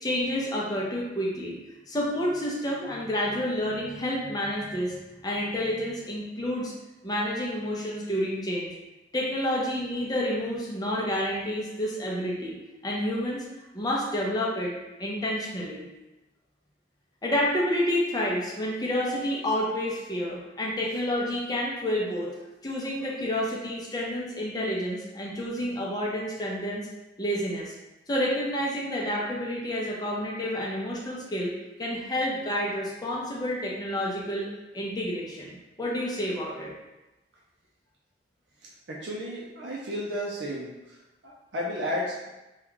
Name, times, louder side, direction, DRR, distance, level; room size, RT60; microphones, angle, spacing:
voice 1, 0.0-1.6 1.9-6.7 7.0-8.8 9.1-12.6 12.8-13.4 13.7-14.7 15.0-15.8 17.2-22.4 22.6-26.9 27.2-27.7 28.1-31.5 31.8-34.5 34.7-36.7, equal, 20° left, -4 dB, 0.5 m, -29 dB
voice 2, 38.9-40.7 41.2-42.2, equal, 70° right, -4 dB, 0.5 m, -32 dB
2.9 x 2.3 x 3.6 m, 1.0 s
head